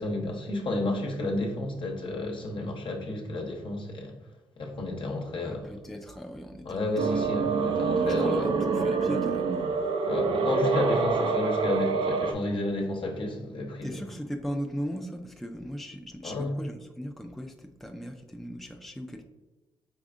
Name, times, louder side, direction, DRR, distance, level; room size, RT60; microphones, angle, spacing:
voice 1, 0.0-4.2 4.6-5.7 6.6-8.5 10.1-14.1 16.2-16.6, left 2 dB, 60° left, 1.0 m, -31 dB
voice 2, 5.4-7.3 8.0-9.7 13.8-19.2, equal, ahead, 0.5 m, -38 dB
sound 1, 7.0-12.3, right 4 dB, 65° right, 0.4 m, -26 dB
5.0 x 3.4 x 2.5 m
supercardioid pair, 55°, 10 cm